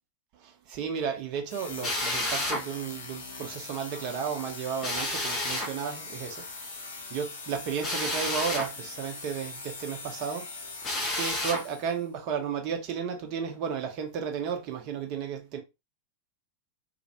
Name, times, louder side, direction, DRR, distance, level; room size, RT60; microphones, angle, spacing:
voice 1, 0.4-6.4 6.8-10.5 11.1-15.6, right 7 dB, 40° right, 0.7 m, -33 dB
sound 1, 1.5-12.0, left 4 dB, 60° left, 0.6 m, -42 dB
Drill, 1.8-2.6 4.8-5.7 7.8-8.7 10.8-11.6, left 1 dB, 30° left, 0.7 m, -30 dB
2.3 x 2.1 x 2.8 m
figure-of-eight pair, 90°, 0 cm